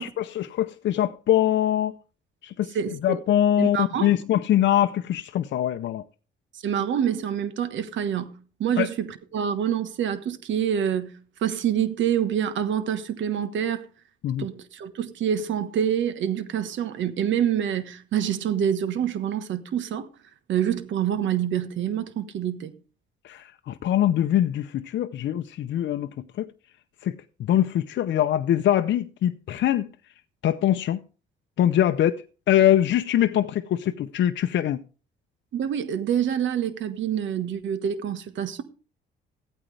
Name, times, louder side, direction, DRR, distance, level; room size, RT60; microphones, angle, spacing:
voice 1, 0.0-1.9 2.4-2.8 3.0-6.0 8.8-8.9 14.2-14.5 23.2-26.5 27.0-29.9 30.4-31.0 31.6-34.8, left 11 dB, 65° left, 0.6 m, -23 dB
voice 2, 2.7-3.2 3.6-4.1 6.6-13.9 14.4-20.1 20.5-22.7 35.5-38.6, right 9 dB, 70° right, 1.3 m, -26 dB
14.5 x 8.9 x 3.3 m
cardioid pair, 90°, 20 cm